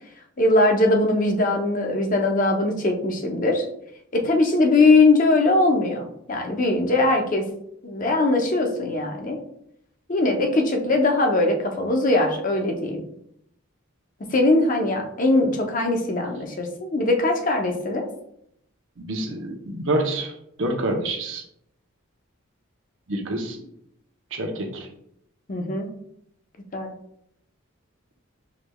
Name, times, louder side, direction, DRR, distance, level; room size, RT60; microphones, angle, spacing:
voice 1, 0.4-3.6 4.1-7.5 7.8-9.4 10.1-13.0 14.2-18.1 25.5-25.9 26.7-26.9, left 2 dB, 40° left, 3 dB, 0.7 m, -21 dB
voice 2, 19.0-20.3 20.6-21.4 23.1-23.6 24.3-24.9, right 1 dB, 65° right, 3 dB, 0.8 m, -27 dB
5.9 x 3.2 x 2.3 m, 0.73 s
head